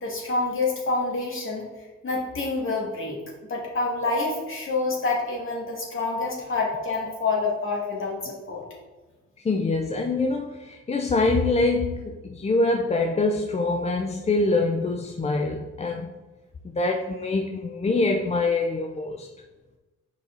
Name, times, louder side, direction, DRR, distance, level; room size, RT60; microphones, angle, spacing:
voice 1, 0.0-1.7 2.0-3.2 3.5-8.6, left 3 dB, 45° left, -3 dB, 2.3 m, -27 dB
voice 2, 9.4-16.1 16.6-19.3, left 3 dB, 20° left, 2 dB, 0.5 m, -24 dB
6.9 x 4.9 x 4.0 m, 1.2 s
cardioid pair, 90°, 30 cm